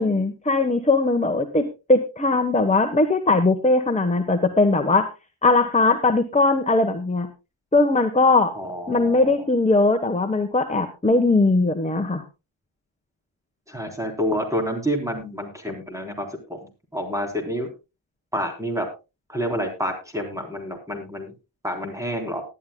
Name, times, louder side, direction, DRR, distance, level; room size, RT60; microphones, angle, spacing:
voice 1, 0.0-5.1 5.4-7.3 7.7-8.5 8.9-12.2, left 3 dB, 15° left, 6 dB, 1.2 m, -20 dB
voice 2, 8.6-9.3 13.7-16.6 16.9-17.7 18.3-18.9 19.3-21.3 21.6-22.4, equal, 5° right, 3 dB, 3.9 m, -28 dB
19.5 x 11.5 x 2.3 m, 0.28 s
wide cardioid pair, 120°, 46 cm